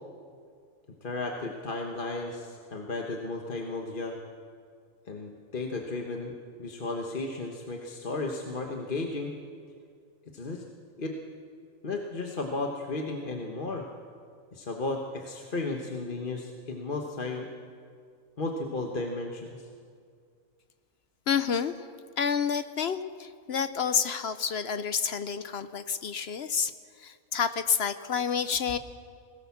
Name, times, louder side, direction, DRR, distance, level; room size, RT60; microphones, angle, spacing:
voice 1, 1.0-4.1 5.1-6.3 6.6-9.3 10.3-10.6 11.0-11.1 11.8-13.9 14.5-17.5 18.4-19.7, left 3 dB, 40° left, 1 dB, 1.4 m, -34 dB
voice 2, 21.3-21.7 22.2-26.7 27.0-28.8, left 6 dB, 55° left, 12 dB, 0.8 m, -29 dB
21.0 x 18.0 x 7.2 m, 2.2 s
omnidirectional pair, 1.5 m